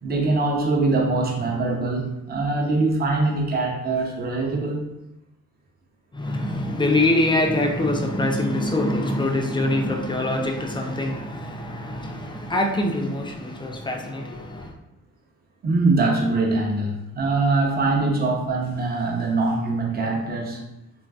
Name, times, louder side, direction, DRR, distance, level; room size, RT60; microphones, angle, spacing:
voice 1, 0.0-4.9 15.6-20.6, right 3 dB, 30° right, 0 dB, 0.6 m, -23 dB
voice 2, 6.1-14.7, left 1 dB, 15° left, 3 dB, 0.3 m, -24 dB
3.1 x 2.4 x 2.3 m, 0.90 s
cardioid pair, 90°, 30 cm